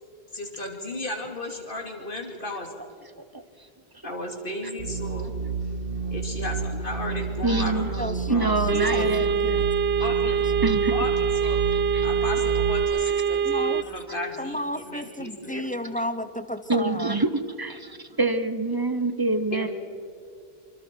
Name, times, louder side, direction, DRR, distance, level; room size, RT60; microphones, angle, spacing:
voice 1, 0.3-2.7 4.0-5.3 6.1-9.0 10.0-10.4 10.9-11.6 12.0-15.6 19.5-19.7, left 1 dB, 60° left, 2 dB, 2.9 m, -34 dB
sound 1, 4.8-12.8, right 4 dB, 65° right, 1.6 m, -30 dB
voice 2, 7.4-8.0 8.3-9.6 10.6-10.9 11.7-12.1 14.1-14.2 16.7-19.7, right 2 dB, 25° right, 10 dB, 1.0 m, -26 dB
voice 3, 8.0-9.7 13.4-13.8 14.4-17.2, equal, 10° left, 11 dB, 0.7 m, -33 dB
sound 2, 8.7-13.8, right 7 dB, 85° right, 1.1 m, -24 dB
25.5 x 25.5 x 4.5 m, 2.4 s
omnidirectional pair, 1.0 m